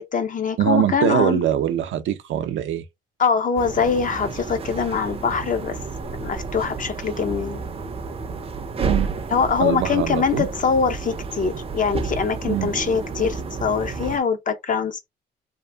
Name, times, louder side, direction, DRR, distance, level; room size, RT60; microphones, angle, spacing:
voice 1, 0.0-1.4 3.2-5.8 6.2-7.6 9.3-15.1, left 6 dB, 40° left, 0.7 m, -23 dB
voice 2, 0.6-2.8 8.8-9.1 9.6-10.5 12.5-12.7, right 10 dB, 75° right, 0.6 m, -22 dB
sound 1, 3.6-14.2, right 4 dB, 30° right, 0.5 m, -31 dB
2.8 x 2.5 x 2.2 m
cardioid pair, 90°, 20 cm